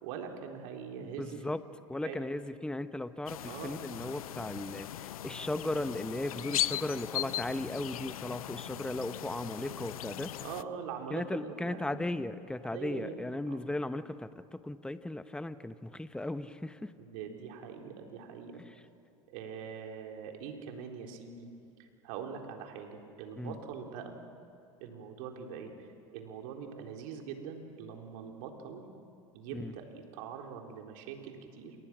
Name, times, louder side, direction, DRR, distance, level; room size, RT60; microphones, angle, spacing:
voice 1, 0.0-1.6 2.0-2.2 3.4-3.7 9.6-9.9 10.4-12.2 12.6-13.6 17.0-18.6 19.3-21.5 21.8-24.2 24.8-25.7 26.1-28.8 29.3-31.8, right 6 dB, 70° right, 2 dB, 4.0 m, -43 dB
voice 2, 1.0-1.6 1.9-10.3 11.1-16.9 23.4-23.6 29.5-29.7, left 1 dB, 5° left, 11 dB, 1.1 m, -36 dB
sound 1, 3.3-10.6, left 12 dB, 85° left, 0.6 m, -38 dB
29.5 x 27.5 x 6.2 m, 2.7 s
hypercardioid pair, 85°, 18 cm